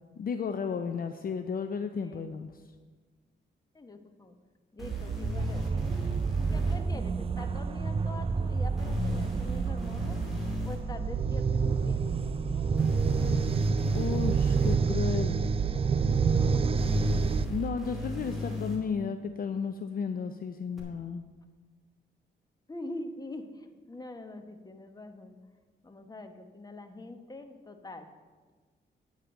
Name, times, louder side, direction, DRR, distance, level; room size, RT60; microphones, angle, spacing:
voice 1, 0.2-2.5 13.9-15.5 17.5-21.2, left 6 dB, 50° left, 8 dB, 0.5 m, -33 dB
voice 2, 3.7-4.4 4.7-5.7 6.5-10.2 10.6-12.2 12.4-12.8 22.7-25.4 25.8-28.1, left 2 dB, 20° left, 6 dB, 1.0 m, -44 dB
sound 1, 4.8-6.8 8.8-10.8 12.8-14.8 16.8-18.8 20.8-20.9, equal, ahead, 2.6 m, -36 dB
sound 2, 4.8-17.4, right 5 dB, 30° right, 0.4 m, -28 dB
9.6 x 4.8 x 7.8 m, 1.4 s
cardioid pair, 95°, 19 cm